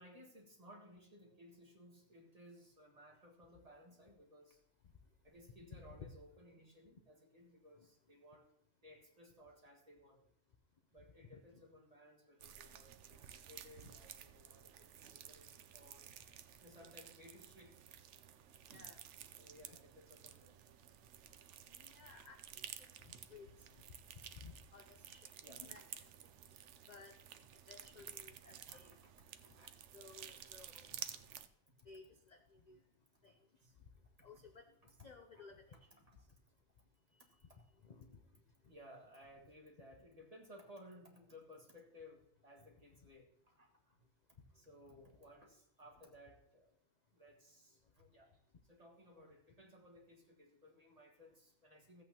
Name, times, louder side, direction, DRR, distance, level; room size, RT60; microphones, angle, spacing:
voice 1, 0.0-4.6 5.2-8.5 8.8-10.2 10.9-16.1 16.6-17.9 19.4-20.6 23.1-23.3 25.4-25.8 26.3-26.4 26.8-26.9 28.3-29.0 29.4-29.8 30.6-30.7 31.0-31.1 33.2-33.8 34.8-34.9 37.1-37.7 38.6-44.0 44.4-46.8 47.1-48.3 48.6-52.0, equal, 30° right, 0 dB, 1.7 m, -60 dB
voice 2, 5.7-6.1 13.8-13.9 18.7-19.0 21.7-22.7 23.3-23.5 24.4-25.8 26.9-27.1 27.7-28.9 29.9-31.0 31.9-32.8 33.2-33.4 34.2-34.6 35.0-35.9 37.8-38.2 42.6-42.7, left 5 dB, 45° left, 5 dB, 0.5 m, -57 dB
sound 1, 12.4-31.5, right 9 dB, 65° right, 0.9 m, -54 dB
15.0 x 8.3 x 2.8 m, 0.73 s
omnidirectional pair, 1.4 m